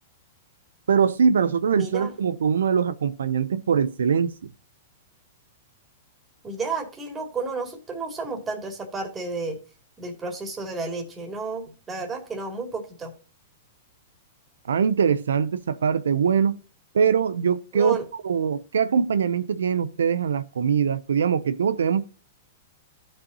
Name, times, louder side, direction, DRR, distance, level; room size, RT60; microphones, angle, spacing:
voice 1, 0.9-4.3 14.7-16.6 16.9-18.0 18.2-22.1, right 6 dB, 85° right, 0.5 m, -22 dB
voice 2, 1.7-2.1 6.4-9.6 10.0-13.1 17.7-18.0, right 3 dB, 20° right, 2.4 m, -32 dB
14.5 x 5.5 x 2.7 m
hypercardioid pair, 125°, 0 cm